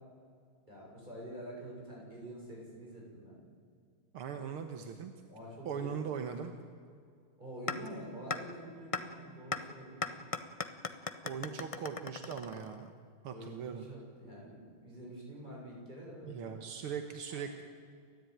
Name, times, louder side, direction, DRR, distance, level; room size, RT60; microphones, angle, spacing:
voice 1, 0.7-3.4 5.3-6.1 7.4-10.3 13.3-16.5 17.3-17.4, right 1 dB, 20° right, -3 dB, 7.3 m, -47 dB
voice 2, 4.1-5.1 5.7-6.5 11.2-12.9 13.2-13.9 16.2-17.6, right 7 dB, 80° right, 6 dB, 2.2 m, -40 dB
sound 1, 7.7-7.8 8.3-8.4 8.9-9.0 9.5-9.6 10.0-12.9, left 4 dB, 50° left, 0.4 m, -36 dB
30.0 x 13.5 x 9.4 m, 2.2 s
omnidirectional pair, 2.3 m